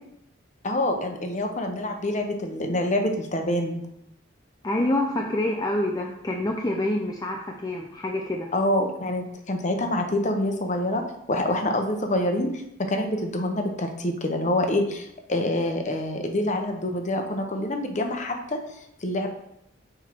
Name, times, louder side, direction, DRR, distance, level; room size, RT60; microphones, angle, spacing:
voice 1, 0.6-3.8 8.5-11.0 11.3-12.5 12.9-18.6 19.0-19.3, left 1 dB, 35° left, 4 dB, 0.8 m, -26 dB
voice 2, 4.6-8.5, left 1 dB, 20° left, 0 dB, 0.5 m, -27 dB
6.0 x 4.4 x 4.4 m, 0.79 s
head